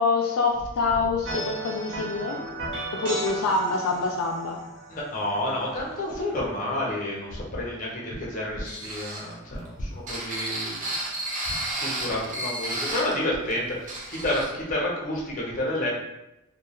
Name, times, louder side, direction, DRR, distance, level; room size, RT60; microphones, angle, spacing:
voice 1, 0.0-2.4 3.0-4.6, left 3 dB, 85° left, 0 dB, 0.3 m, -25 dB
sound 1, 1.2-6.7, right 1 dB, 55° right, 1.0 m, -36 dB
voice 2, 4.9-10.8 11.4-15.9, left 1 dB, 40° left, -4 dB, 0.7 m, -30 dB
sound 2, 8.6-13.2 13.5-13.6 13.9-14.5, right 1 dB, 35° right, 0.4 m, -32 dB
2.3 x 2.1 x 2.9 m, 0.91 s
head